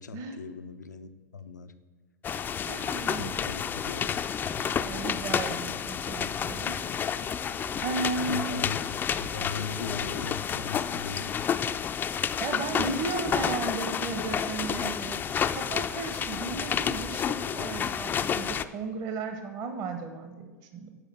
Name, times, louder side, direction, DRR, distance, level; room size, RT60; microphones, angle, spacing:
voice 1, 0.0-1.7 3.1-4.1 8.2-8.8 9.2-11.3, left 5 dB, 90° left, 9 dB, 0.5 m, -39 dB
sound 1, 2.2-18.7, left 7 dB, 20° left, 0.3 m, -30 dB
voice 2, 2.6-3.4 4.8-6.7 7.8-8.6 12.4-15.2 15.5-21.0, right 4 dB, 45° right, 7 dB, 0.9 m, -35 dB
7.4 x 5.0 x 6.6 m, 1.4 s
hypercardioid pair, 100°, 9 cm